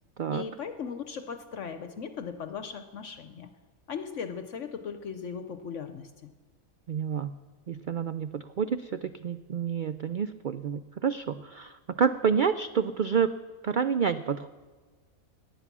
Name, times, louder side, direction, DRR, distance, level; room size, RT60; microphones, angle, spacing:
voice 1, 0.3-3.5 3.9-6.3, left 6 dB, 65° left, 9 dB, 1.1 m, -38 dB
voice 2, 6.9-7.3 7.7-13.3 13.6-14.5, right 7 dB, 90° right, 11 dB, 0.4 m, -28 dB
18.0 x 11.0 x 6.1 m, 1.4 s
omnidirectional pair, 1.5 m